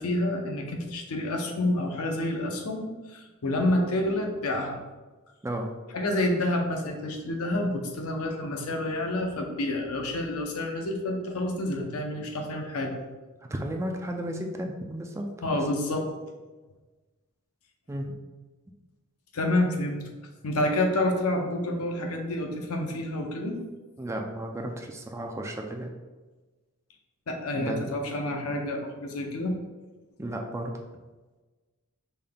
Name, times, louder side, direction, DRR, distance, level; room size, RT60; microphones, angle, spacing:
voice 1, 0.0-4.8 5.9-12.9 15.4-16.1 19.3-20.0 20.4-23.6 27.3-29.5, left 1 dB, 85° left, 3 dB, 0.7 m, -28 dB
voice 2, 13.5-15.6 17.9-18.1 24.0-25.9 27.6-27.9 30.2-30.7, right 1 dB, 15° right, 2 dB, 0.4 m, -33 dB
5.5 x 3.4 x 2.3 m, 1.2 s
head